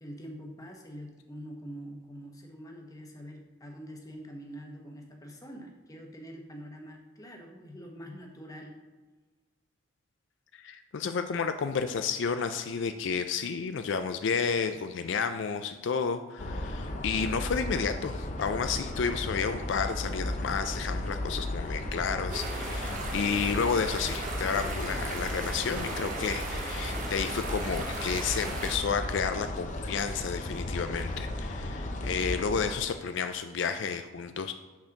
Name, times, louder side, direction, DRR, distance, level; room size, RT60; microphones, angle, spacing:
voice 1, 0.0-8.8, equal, 20° left, 1 dB, 1.0 m, -45 dB
voice 2, 10.5-34.5, left 6 dB, 65° left, 8 dB, 0.4 m, -31 dB
sound 1, 16.4-32.8, left 1 dB, 40° left, 0.7 m, -35 dB
sound 2, 22.3-28.8, right 2 dB, 40° right, 1.1 m, -37 dB
6.2 x 4.3 x 5.9 m, 1.3 s
head